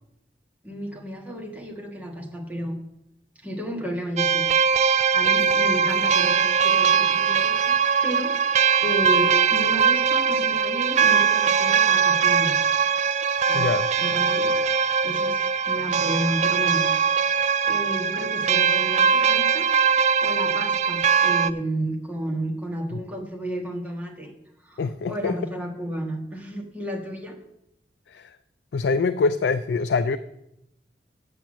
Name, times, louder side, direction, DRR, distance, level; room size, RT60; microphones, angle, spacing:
voice 1, 0.6-2.8 3.4-4.4 5.1-12.6 13.5-14.6 15.0-15.4 15.7-16.9 17.6-19.7 20.2-24.3 24.6-27.4, right 1 dB, 10° right, 0 dB, 1.5 m, -32 dB
sound 1, 4.2-21.5, right 6 dB, 40° right, 0.3 m, -21 dB
voice 2, 13.5-13.9 22.9-23.0 24.8-25.4 28.1-28.4 28.7-30.2, left 4 dB, 70° left, 11 dB, 0.4 m, -24 dB
7.8 x 7.0 x 7.4 m, 0.84 s
head